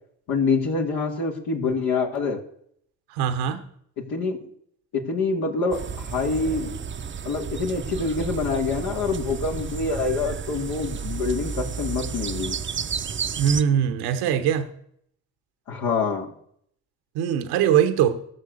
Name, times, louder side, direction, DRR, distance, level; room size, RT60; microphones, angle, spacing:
voice 1, 0.3-2.4 4.1-4.4 4.9-6.8 7.3-12.6 15.7-16.3, left 4 dB, 75° left, 0 dB, 2.3 m, -26 dB
voice 2, 3.1-3.6 13.4-14.7 17.1-18.2, right 9 dB, 85° right, 9 dB, 1.2 m, -21 dB
sound 1, 5.7-13.6, right 6 dB, 30° right, 0.7 m, -32 dB
15.5 x 6.7 x 6.6 m, 0.67 s
supercardioid pair, 65°, 37 cm